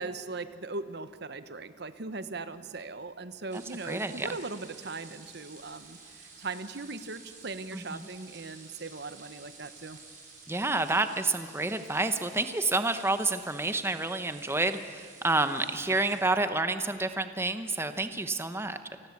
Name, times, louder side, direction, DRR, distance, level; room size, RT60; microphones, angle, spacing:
voice 1, 0.0-10.0, right 3 dB, 60° right, 12 dB, 1.1 m, -39 dB
voice 2, 3.5-4.4 7.7-8.0 10.5-18.8, right 2 dB, 15° right, 9 dB, 0.9 m, -29 dB
sound 1, 3.5-16.2, right 4 dB, 40° right, 6.7 m, -52 dB
28.5 x 19.5 x 8.4 m, 2.1 s
head